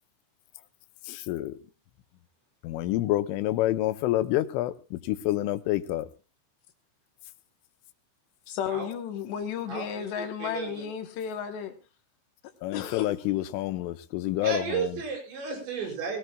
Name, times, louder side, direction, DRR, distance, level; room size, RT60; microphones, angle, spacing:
voice 1, 1.1-1.6 2.6-6.1 12.6-15.0, left 15 dB, 90° left, 3.4 m, -28 dB
voice 2, 8.5-11.8 12.7-13.1 13.6-13.8, left 8 dB, 70° left, 3.1 m, -33 dB
voice 3, 9.7-10.8 14.4-16.2, right 5 dB, 65° right, 7.5 m, -33 dB
22.0 x 18.0 x 2.3 m
omnidirectional pair, 5.5 m